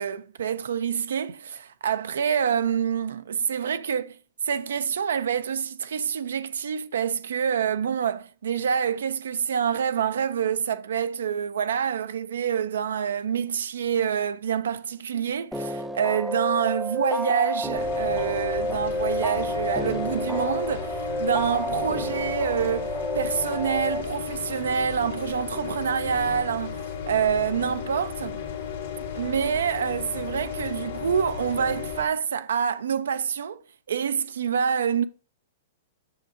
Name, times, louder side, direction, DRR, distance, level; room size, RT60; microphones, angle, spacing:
voice 1, 0.0-4.2 4.4-28.4 29.2-33.6 33.9-35.1, right 7 dB, 80° right, 0.4 m, -27 dB
sound 1, 15.5-24.0, equal, ahead, 0.5 m, -30 dB
sound 2, 17.8-32.0, left 7 dB, 80° left, 1.9 m, -34 dB
7.7 x 6.1 x 2.6 m
hypercardioid pair, 120°, 0 cm